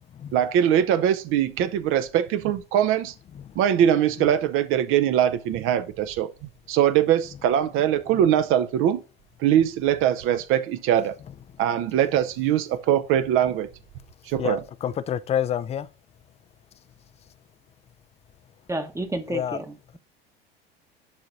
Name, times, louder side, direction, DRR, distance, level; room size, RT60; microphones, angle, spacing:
voice 1, 0.3-3.1 3.6-6.3 6.7-9.0 9.4-11.2 11.6-13.7 14.3-14.6, right 10 dB, 45° right, 0.7 m, -22 dB
voice 2, 14.8-15.8 19.3-19.6, left 9 dB, 20° left, 0.4 m, -26 dB
voice 3, 18.7-20.0, right 2 dB, 10° right, 1.0 m, -31 dB
11.5 x 3.9 x 2.6 m
figure-of-eight pair, 70°, 29 cm